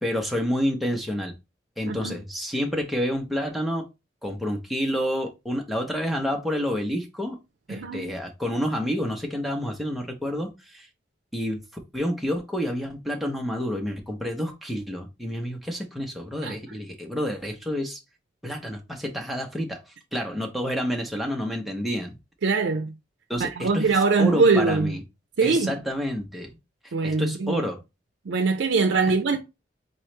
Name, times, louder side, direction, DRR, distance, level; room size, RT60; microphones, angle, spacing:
voice 1, 0.0-1.3 1.8-3.9 4.2-7.4 7.7-10.9 11.3-11.6 11.9-18.0 18.4-19.8 20.1-22.2 23.3-23.9 24.2-25.0 25.4-26.5 27.0-27.8, equal, ahead, 0.8 m, -29 dB
voice 2, 7.7-8.1 16.4-16.5 22.4-22.9 23.4-25.0 25.4-25.8 26.9-27.6 28.3-29.4, right 4 dB, 90° right, 0.5 m, -22 dB
4.0 x 3.1 x 3.2 m
head